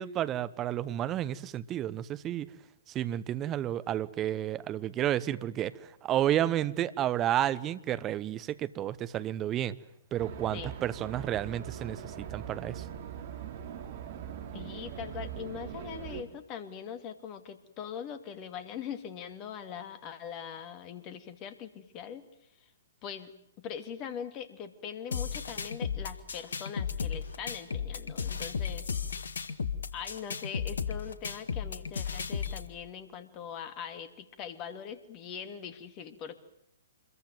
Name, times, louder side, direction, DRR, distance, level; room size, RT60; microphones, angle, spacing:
voice 1, 0.0-2.5 2.9-9.8 10.1-12.8, right 12 dB, 20° right, 1.1 m, -31 dB
sound 1, 10.2-16.2, right 9 dB, 45° right, 3.1 m, -41 dB
voice 2, 14.5-22.3 22.6-22.7 23.0-23.3 23.6-28.9 29.9-36.4, left 8 dB, 30° left, 2.6 m, -42 dB
sound 2, 25.1-32.7, left 6 dB, 65° left, 1.8 m, -35 dB
26.5 x 22.5 x 9.3 m
figure-of-eight pair, 120°, 0 cm